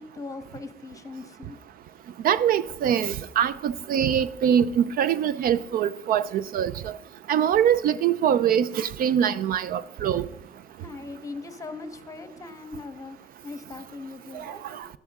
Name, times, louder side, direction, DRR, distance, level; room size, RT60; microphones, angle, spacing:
voice 1, 0.0-1.6 10.8-13.2 13.4-14.9, left 3 dB, 20° left, 1.2 m, -40 dB
voice 2, 2.2-7.0 7.3-10.3 14.3-14.4, right 9 dB, 60° right, 0.5 m, -23 dB
12.5 x 11.0 x 3.6 m
cardioid pair, 110°, 17 cm